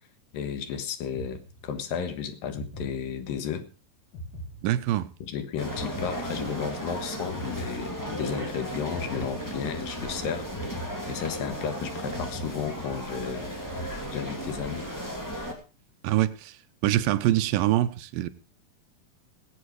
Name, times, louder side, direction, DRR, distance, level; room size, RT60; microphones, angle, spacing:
voice 1, 0.3-3.7 5.2-13.5 14.1-14.9, left 7 dB, 90° left, 3.1 m, -33 dB
sound 1, 1.1-2.0 2.5-3.6 4.1-5.3 5.7-6.9 7.3-8.5 8.9-10.0 10.5-11.7 12.1-13.3 13.7-14.6, right 1 dB, 70° left, 5.1 m, -42 dB
voice 2, 4.6-5.1 16.0-16.6 16.8-18.3, right 14 dB, 85° right, 2.5 m, -24 dB
sound 2, 5.6-15.5, equal, 5° left, 2.1 m, -35 dB
19.5 x 8.4 x 4.7 m
omnidirectional pair, 3.9 m